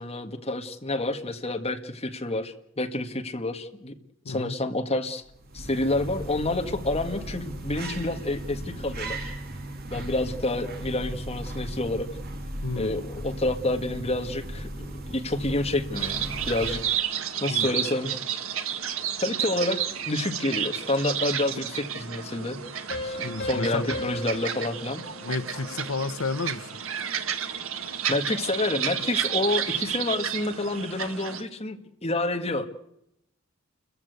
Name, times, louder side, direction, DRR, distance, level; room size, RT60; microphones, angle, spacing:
voice 1, 0.0-3.9 4.3-5.2 5.5-9.3 9.9-12.1 12.8-16.9 17.4-18.1 19.2-19.8 20.1-22.6 23.0-25.0 28.1-32.7, left 2 dB, 30° left, 5 dB, 1.8 m, -29 dB
voice 2, 4.2-4.6 12.6-12.9 17.5-17.7 23.2-23.9 25.2-26.7, left 3 dB, 90° left, 12 dB, 0.9 m, -31 dB
sound 1, 5.2-17.1, right 1 dB, 50° right, 3.0 m, -37 dB
sound 2, 16.0-31.4, right 8 dB, 85° right, 1.8 m, -31 dB
sound 3, 22.9-26.2, left 1 dB, 45° left, 4.9 m, -37 dB
29.5 x 15.0 x 8.2 m, 0.81 s
head